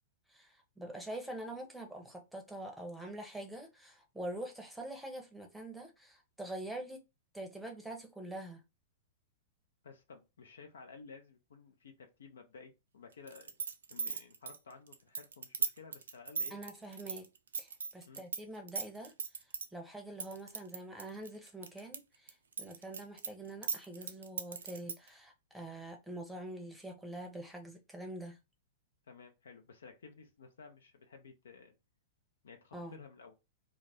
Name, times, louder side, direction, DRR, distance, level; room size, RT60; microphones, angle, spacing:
voice 1, 0.3-7.0 7.3-8.6 16.5-17.3 17.6-19.1 19.7-28.4 32.7-33.0, right 1 dB, 5° right, 0.7 m, -45 dB
voice 2, 9.8-13.6 13.9-16.6 18.1-18.2 29.1-31.7 32.4-33.3, left 5 dB, 75° left, 0.6 m, -54 dB
sound 1, 13.3-18.4 18.7-19.7 20.2-22.0 22.3-25.1, right 6 dB, 80° right, 0.4 m, -37 dB
2.3 x 2.1 x 3.4 m
hypercardioid pair, 105°, 0 cm